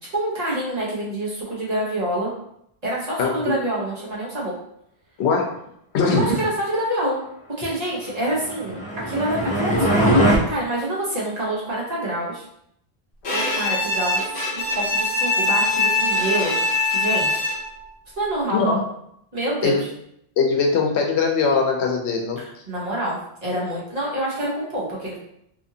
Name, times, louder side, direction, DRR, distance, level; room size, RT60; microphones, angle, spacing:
voice 1, 0.1-2.3 2.8-4.5 6.1-7.2 7.6-8.8 9.1-12.5 13.3-16.6 16.9-17.4 18.2-18.8 19.3-19.8 22.4-25.2, right 1 dB, 40° right, -6 dB, 0.9 m, -26 dB
voice 2, 5.2-5.5 5.9-6.3 18.5-18.8 19.6-19.8 20.4-22.4, left 4 dB, 85° left, 1 dB, 0.9 m, -20 dB
sound 1, 8.4-10.4, equal, 10° left, 0.6 m, -20 dB
Bowed string instrument, 13.2-17.8, left 2 dB, 45° left, 0.8 m, -22 dB
2.8 x 2.5 x 2.7 m, 0.75 s
omnidirectional pair, 1.1 m